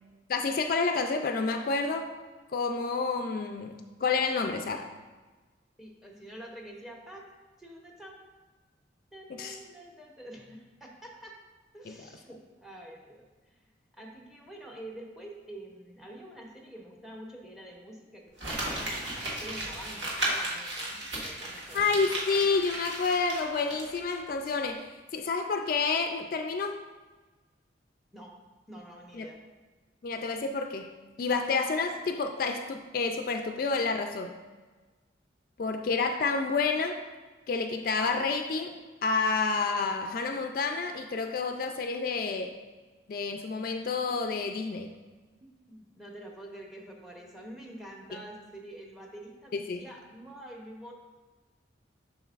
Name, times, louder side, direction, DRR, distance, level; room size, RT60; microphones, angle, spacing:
voice 1, 0.3-2.1 2.5-4.9 9.3-9.6 11.9-12.0 21.7-24.9 25.1-26.8 29.1-29.3 30.0-30.9 31.2-34.3 35.6-37.0 37.5-38.7 39.0-42.5 43.1-44.9 48.1-48.2 49.5-49.8, left 4 dB, 50° left, 5 dB, 0.3 m, -29 dB
voice 2, 5.8-7.3 7.6-8.2 9.1-11.4 11.7-21.9 28.1-28.3 28.7-29.4 45.4-50.9, right 1 dB, ahead, 0 dB, 0.7 m, -47 dB
Crumpling crinkling, 18.4-24.1 24.4-24.5, right 1 dB, 75° right, 1.5 m, -35 dB
7.0 x 6.2 x 2.4 m, 1.3 s
head